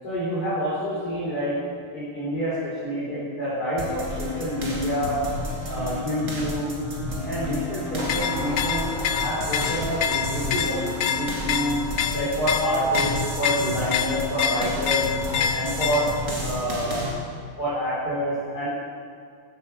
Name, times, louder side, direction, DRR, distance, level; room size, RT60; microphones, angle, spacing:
voice 1, 0.0-1.6 1.9-5.2 5.7-6.7 7.2-11.8 12.1-15.1 15.5-16.1 16.3-17.0 17.6-18.7, equal, 45° left, -11 dB, 4.8 m, -27 dB
sound 1, 3.8-17.1, left 1 dB, 35° right, 2.6 m, -31 dB
sound 2, 6.4-6.6 8.0-11.8, right 3 dB, 60° right, 2.0 m, -39 dB
sound 3, 8.0-16.3, left 8 dB, 70° left, 1.1 m, -27 dB
14.5 x 9.9 x 6.9 m, 2.2 s
omnidirectional pair, 2.3 m